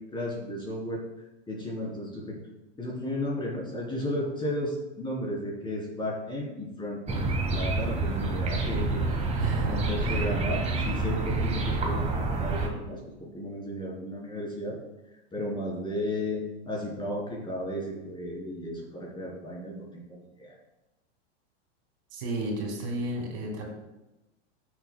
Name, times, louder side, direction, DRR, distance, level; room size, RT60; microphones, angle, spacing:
voice 1, 0.0-2.4 2.8-9.0 9.7-14.8 15.1-20.5, left 1 dB, 15° left, -4 dB, 3.3 m, -34 dB
sound 1, 7.1-12.7, right 3 dB, 20° right, 1.6 m, -28 dB
voice 2, 9.4-10.3 22.1-23.6, right 2 dB, 60° right, 0 dB, 3.0 m, -32 dB
14.5 x 7.0 x 2.2 m, 1.0 s
hypercardioid pair, 135°, 36 cm